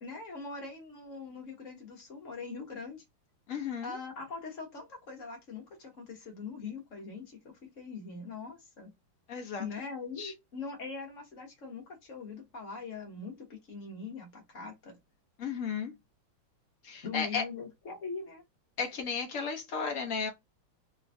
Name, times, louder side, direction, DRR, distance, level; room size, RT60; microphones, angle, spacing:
voice 1, 0.0-3.0 3.8-8.9 9.6-15.0 17.0-18.4, left 4 dB, 45° left, 1.1 m, -42 dB
voice 2, 3.5-4.0 9.3-9.7 10.2-10.3 15.4-15.9 16.8-17.4 18.8-20.3, left 5 dB, 65° left, 0.8 m, -34 dB
3.3 x 3.0 x 2.6 m
omnidirectional pair, 2.3 m